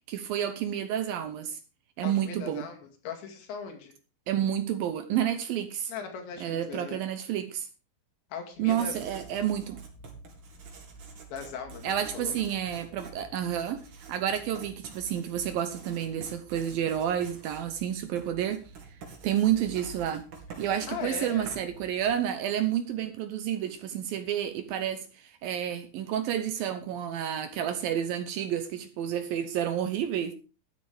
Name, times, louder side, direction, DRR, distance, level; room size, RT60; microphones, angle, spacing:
voice 1, 0.1-1.6 2.0-2.7 4.3-5.9 6.4-7.7 8.6-9.8 11.8-13.8 14.1-18.6 19.2-20.2 20.6-30.3, right 10 dB, 70° right, 2.3 m, -30 dB
voice 2, 2.0-3.9 5.9-7.0 8.3-9.0 11.3-12.3 20.9-21.5, left 6 dB, 85° left, 4.6 m, -39 dB
Writing, 8.5-22.4, right 4 dB, 50° right, 3.8 m, -47 dB
12.5 x 9.6 x 5.0 m
omnidirectional pair, 5.0 m